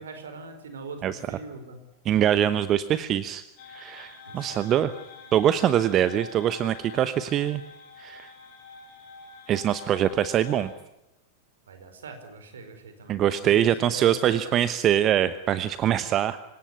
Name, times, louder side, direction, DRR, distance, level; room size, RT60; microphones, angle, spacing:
voice 1, 0.0-1.8 4.2-4.9 11.7-14.8, right 3 dB, 65° right, 8 dB, 4.9 m, -42 dB
voice 2, 2.0-4.9 5.3-7.6 8.0-8.3 9.5-10.7 13.1-16.4, right 11 dB, 30° right, 14 dB, 1.0 m, -23 dB
harmonizing fire alarms, 3.6-10.7, left 4 dB, 45° left, 7.7 m, -46 dB
26.5 x 17.5 x 9.8 m, 0.89 s
figure-of-eight pair, 90°, 0 cm